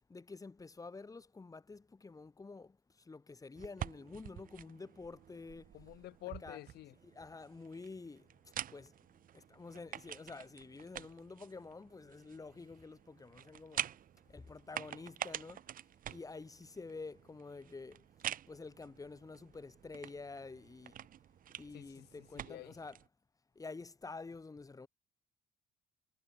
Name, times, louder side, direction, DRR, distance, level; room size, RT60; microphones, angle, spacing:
voice 1, 0.1-5.8 6.4-6.6 7.0-8.3 8.7-8.9 9.3-13.9 14.2-15.7 16.1-18.0 18.5-20.9 21.6-23.0 23.5-24.9, left 3 dB, 20° left, 4.4 m, -49 dB
sound 1, 3.6-23.1, right 10 dB, 55° right, 2.1 m, -47 dB
voice 2, 5.7-6.9 21.7-22.8, left 16 dB, 80° left, 3.2 m, -49 dB
cardioid pair, 110°, 17 cm